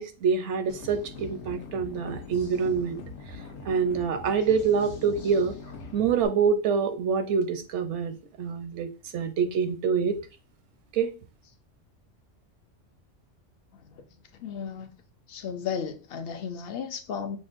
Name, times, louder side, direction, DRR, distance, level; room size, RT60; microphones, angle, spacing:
voice 1, 0.0-3.0 3.7-5.5 5.9-8.9 9.1-10.2 10.9-11.1, right 6 dB, 85° right, 0.9 m, -26 dB
sound 1, 0.7-6.3, left 3 dB, 80° left, 1.1 m, -42 dB
voice 2, 13.7-14.0 14.3-14.9 15.3-17.4, left 7 dB, 65° left, 0.7 m, -34 dB
6.0 x 2.1 x 2.5 m
omnidirectional pair, 1.2 m